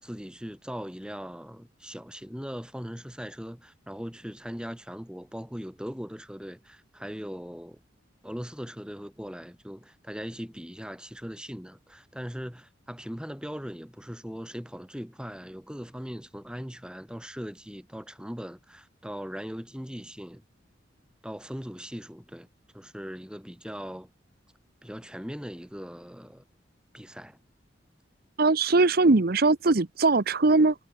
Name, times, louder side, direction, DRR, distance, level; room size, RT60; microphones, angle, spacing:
voice 1, 0.0-7.8 8.2-20.4 21.2-22.5 22.7-24.1 24.8-26.4 26.9-27.4, equal, 5° right, 3.9 m, -39 dB
voice 2, 28.4-30.7, right 3 dB, 55° right, 0.9 m, -21 dB
head